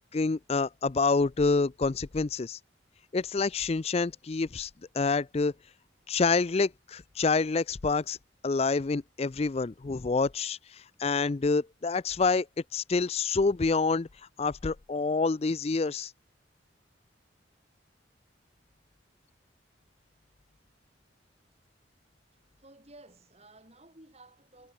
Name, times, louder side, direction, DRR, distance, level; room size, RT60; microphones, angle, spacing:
voice 1, 0.1-2.6 3.1-4.7 4.9-5.5 6.1-8.2 8.4-10.6 11.0-12.5 12.7-14.1 14.4-16.1, left 4 dB, 30° left, 0.4 m, -27 dB
voice 2, 22.3-24.7, right 2 dB, 35° right, 7.0 m, -55 dB
head